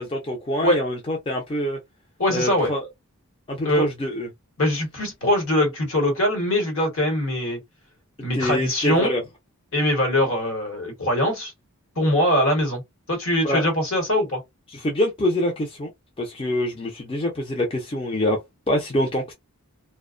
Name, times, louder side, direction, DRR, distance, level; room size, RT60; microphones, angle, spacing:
voice 1, 0.0-1.8 2.3-2.9 3.5-4.3 8.3-9.2 13.4-13.6 14.7-15.9 16.2-18.4 18.7-19.3, left 1 dB, 25° left, 0.4 m, -25 dB
voice 2, 2.2-2.7 3.6-3.8 4.6-7.6 8.2-9.1 9.7-11.5 12.0-12.8 13.1-14.4, left 1 dB, 60° left, 1.2 m, -22 dB
2.4 x 2.2 x 2.4 m
head